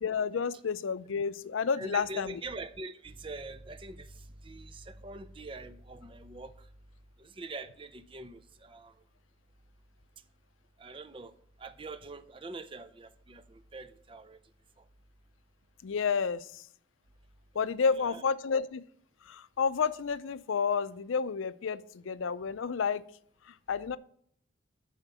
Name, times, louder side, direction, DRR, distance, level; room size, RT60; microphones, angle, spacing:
voice 1, 0.0-2.4 15.8-16.6 17.5-18.8 19.2-23.0 23.5-24.0, left 6 dB, 80° left, 16 dB, 0.5 m, -30 dB
voice 2, 1.8-6.7 7.2-9.0 10.8-14.4 14.8-14.9 18.0-18.2, right 2 dB, 25° right, 11 dB, 0.4 m, -44 dB
7.3 x 5.0 x 6.8 m, 0.65 s
head